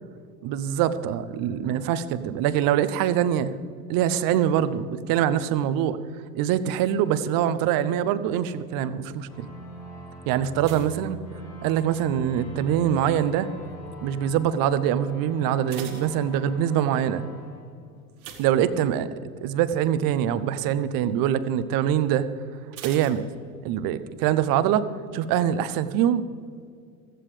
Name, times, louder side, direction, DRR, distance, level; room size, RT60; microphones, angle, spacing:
voice 1, 0.4-3.5 3.9-6.0 6.3-9.5 10.3-11.2 11.6-13.5 14.0-17.2 18.4-19.1 19.4-22.3 22.8-23.3 23.6-24.9 25.1-26.2, right 10 dB, 50° right, 14 dB, 0.8 m, -24 dB
sound 1, 9.2-18.6, equal, 75° left, 3.5 m, -43 dB
sound 2, 10.6-12.1 12.3-12.8 13.4-13.8 14.1-14.2 14.6-14.7 15.3-16.9 18.1-19.3 19.7-19.9 20.3-20.4 22.7-23.9 24.2-24.3, right 7 dB, 75° right, 1.7 m, -43 dB
15.5 x 14.0 x 3.3 m, 2.2 s
hypercardioid pair, 75°, 43 cm